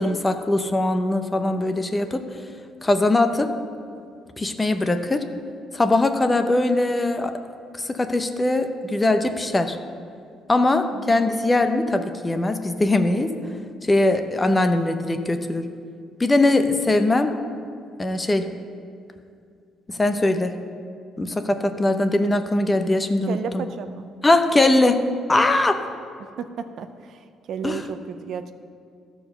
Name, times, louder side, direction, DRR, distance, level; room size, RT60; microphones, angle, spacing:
voice 1, 0.0-2.3 2.8-3.5 4.4-5.3 5.7-7.3 7.7-9.8 10.5-13.3 13.8-15.7 16.2-17.3 18.0-18.5 19.9-20.5 21.2-23.6 24.2-25.8 27.6-27.8, left 2 dB, 15° left, 8 dB, 0.7 m, -21 dB
voice 2, 10.9-11.2 23.3-24.0 26.4-28.5, right 7 dB, 65° right, 9 dB, 0.5 m, -33 dB
13.0 x 4.6 x 6.6 m, 2.3 s
cardioid pair, 105°, 0 cm